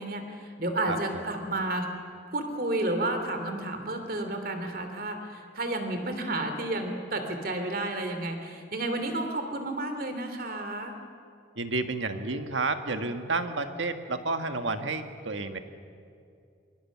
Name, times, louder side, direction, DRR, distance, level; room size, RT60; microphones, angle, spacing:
voice 1, 0.0-1.9 2.3-10.9, right 2 dB, 50° right, 6 dB, 3.0 m, -31 dB
voice 2, 0.9-1.2 11.6-15.6, right 3 dB, 80° right, 7 dB, 1.6 m, -31 dB
26.5 x 22.5 x 7.4 m, 2.4 s
head